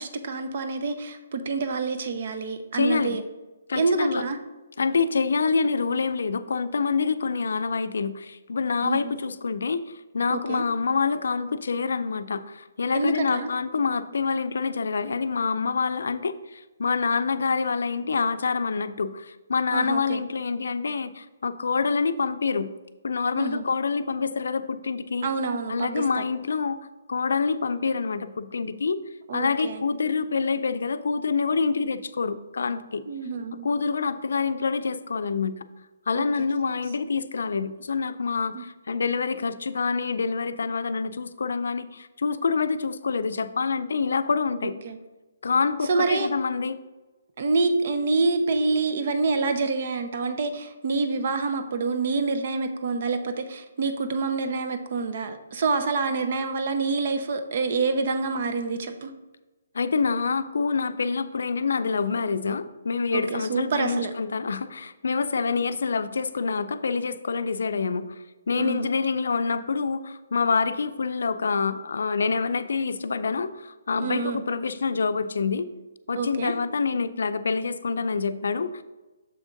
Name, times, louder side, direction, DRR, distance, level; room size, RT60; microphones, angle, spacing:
voice 1, 0.0-3.2 3.7-4.4 8.8-9.0 10.3-10.6 12.9-13.5 19.7-20.2 23.3-23.6 25.2-26.2 29.3-29.8 33.1-33.7 36.1-36.3 38.5-38.6 44.8-45.0 45.9-46.3 47.4-59.1 63.1-64.1 68.6-68.9 74.0-74.4 76.1-76.5, right 3 dB, 50° right, 8 dB, 0.7 m, -27 dB
voice 2, 2.7-3.2 3.7-4.3 4.8-22.7 23.0-25.3 25.7-26.8 27.1-29.0 29.3-33.0 33.6-35.5 36.1-44.7 45.4-46.8 59.7-75.7 76.1-78.8, left 5 dB, 75° left, 12 dB, 0.4 m, -26 dB
7.0 x 3.6 x 5.2 m, 1.1 s
hypercardioid pair, 165°, 0 cm